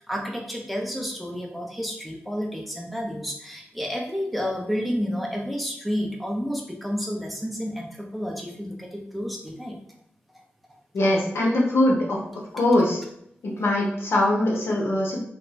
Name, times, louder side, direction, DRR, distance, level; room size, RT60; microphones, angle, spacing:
voice 1, 0.1-9.8, equal, ahead, 0 dB, 0.7 m, -30 dB
voice 2, 10.9-12.2 12.5-13.0 13.4-15.2, left 1 dB, 80° left, -2 dB, 0.9 m, -22 dB
2.7 x 2.6 x 3.3 m, 0.73 s
wide cardioid pair, 85°, 4 cm